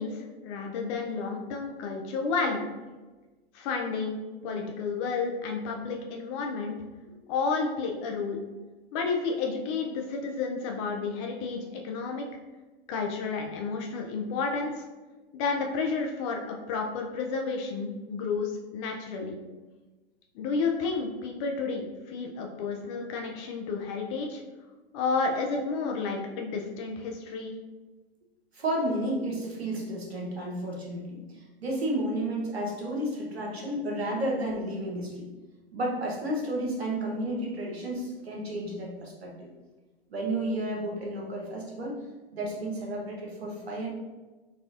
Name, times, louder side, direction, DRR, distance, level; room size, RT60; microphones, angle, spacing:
voice 1, 0.0-2.7 3.5-6.8 7.3-8.4 8.9-12.2 12.9-14.8 15.3-19.4 20.3-24.4 24.9-27.6, left 4 dB, 30° left, 2 dB, 0.4 m, -31 dB
voice 2, 28.5-31.2 31.6-35.3 35.7-39.5 40.1-42.0 42.3-43.9, right 1 dB, 80° right, -2 dB, 1.0 m, -32 dB
4.0 x 2.3 x 2.4 m, 1.2 s
figure-of-eight pair, 105°, 31 cm